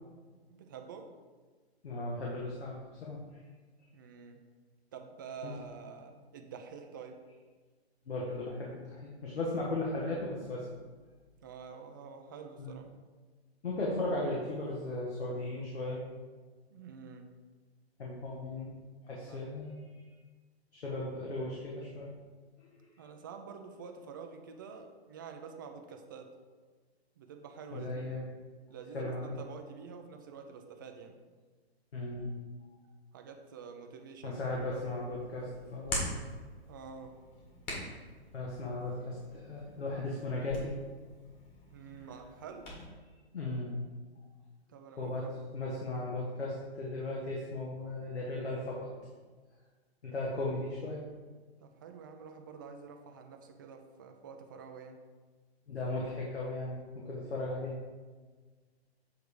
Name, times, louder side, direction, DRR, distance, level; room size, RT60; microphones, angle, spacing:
voice 1, 0.5-1.1 3.9-4.4 4.9-7.2 11.4-12.9 16.7-17.3 19.1-19.4 23.0-26.3 27.2-28.1 28.7-31.1 33.1-34.4 36.7-37.2 41.7-42.7 44.7-45.3 50.4-50.5 51.6-55.0, right 6 dB, 20° right, 5 dB, 0.3 m, -48 dB
voice 2, 1.8-3.4 5.4-5.5 8.1-10.6 12.6-12.7 13.6-16.0 18.0-18.7 19.0-19.8 20.7-22.1 27.7-28.2 28.9-29.4 31.9-32.3 34.2-36.0 38.3-40.7 43.3-43.8 45.0-45.3 45.5-48.9 50.0-51.0 55.7-57.8, left 2 dB, 80° left, -4 dB, 1.6 m, -36 dB
Hands, 34.4-42.8, left 1 dB, 25° left, 2.0 m, -44 dB
7.9 x 3.5 x 4.7 m, 1.4 s
hypercardioid pair, 140°, 33 cm